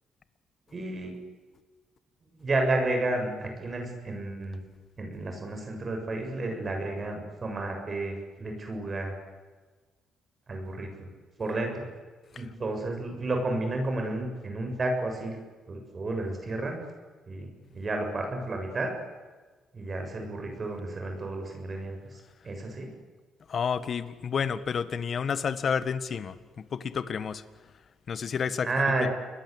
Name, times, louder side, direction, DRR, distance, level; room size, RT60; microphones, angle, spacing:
voice 1, 0.7-1.1 2.3-4.6 5.0-9.2 10.5-11.1 11.4-11.9 12.3-15.4 15.7-16.8 17.3-18.9 19.7-22.9 28.6-29.1, right 2 dB, 35° right, 4 dB, 7.2 m, -31 dB
voice 2, 23.5-27.4 28.1-28.7 29.0-29.1, left 6 dB, 50° left, 13 dB, 1.6 m, -30 dB
29.5 x 22.0 x 8.2 m, 1.4 s
cardioid pair, 90°, 0 cm